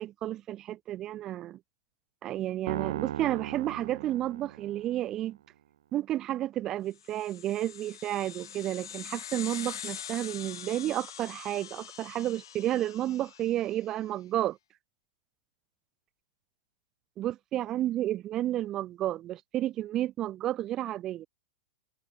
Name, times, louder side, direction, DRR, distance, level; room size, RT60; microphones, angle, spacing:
voice 1, 0.0-1.6 2.2-5.4 5.9-14.6 17.2-21.3, right 13 dB, 20° right, 1.2 m, -31 dB
sound 1, 2.7-5.1, right 11 dB, 65° right, 1.9 m, -37 dB
sound 2, 7.0-13.8, left 10 dB, 80° left, 2.9 m, -44 dB
supercardioid pair, 180°, 2 cm